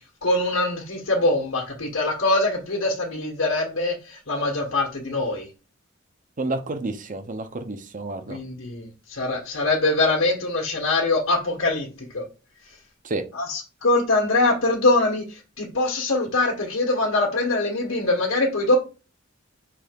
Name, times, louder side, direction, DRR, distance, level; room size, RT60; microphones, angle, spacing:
voice 1, 0.2-5.5 8.3-12.2 13.3-18.8, left 2 dB, 80° left, -2 dB, 1.6 m, -23 dB
voice 2, 6.4-8.4 13.0-13.2, right 2 dB, 40° right, 8 dB, 0.9 m, -30 dB
6.2 x 3.5 x 5.2 m, 0.32 s
head